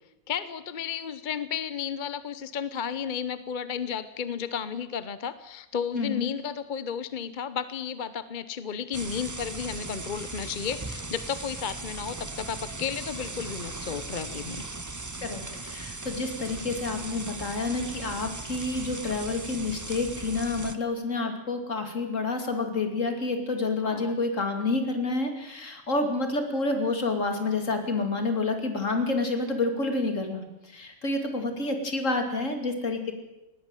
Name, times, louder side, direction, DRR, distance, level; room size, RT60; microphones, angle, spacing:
voice 1, 0.3-14.7 23.8-24.1, left 7 dB, 40° left, 14 dB, 0.8 m, -33 dB
voice 2, 5.9-6.3 15.2-33.1, left 3 dB, 65° left, 6 dB, 3.0 m, -29 dB
sound 1, 8.9-20.8, right 2 dB, 15° right, 0.8 m, -38 dB
19.5 x 17.0 x 9.0 m, 0.96 s
omnidirectional pair, 1.4 m